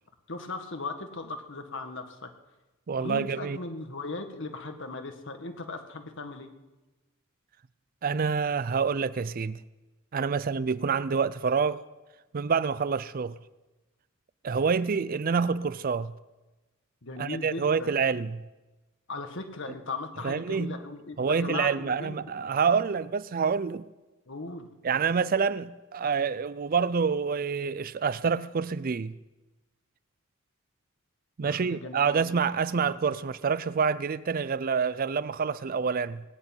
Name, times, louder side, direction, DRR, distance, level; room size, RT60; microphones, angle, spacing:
voice 1, 0.3-2.3 3.0-6.5 17.0-17.9 19.1-22.2 24.3-24.7 31.4-32.3 32.8-33.2, left 3 dB, 60° left, 1.7 m, -38 dB
voice 2, 2.9-3.6 8.0-9.6 10.1-11.8 12.3-13.3 14.4-16.1 17.2-18.4 20.2-20.8 21.2-23.9 24.8-29.1 31.4-36.2, right 5 dB, 45° right, 0.4 m, -27 dB
19.5 x 8.3 x 9.0 m
head